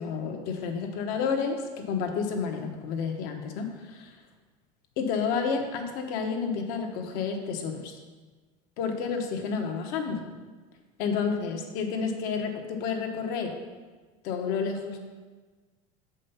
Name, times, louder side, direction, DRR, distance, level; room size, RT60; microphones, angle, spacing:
voice 1, 0.0-4.1 5.0-7.9 8.8-10.2 11.0-13.5 14.2-15.0, left 5 dB, 60° left, 4 dB, 1.2 m, -30 dB
7.7 x 5.3 x 5.6 m, 1.4 s
cardioid pair, 145°, 17 cm